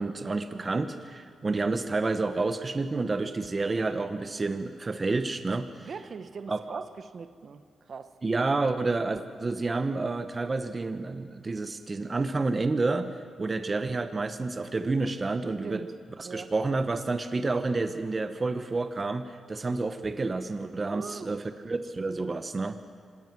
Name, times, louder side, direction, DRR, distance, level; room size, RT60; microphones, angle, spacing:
voice 1, 0.0-5.9 6.5-6.8 8.2-15.8 16.2-22.8, right 3 dB, 35° right, 8 dB, 1.0 m, -29 dB
voice 2, 5.9-8.1 15.6-15.9 16.2-16.5 20.8-21.4, right 5 dB, 55° right, 9 dB, 1.2 m, -41 dB
26.0 x 18.5 x 6.1 m, 2.1 s
cardioid pair, 75°, 0 cm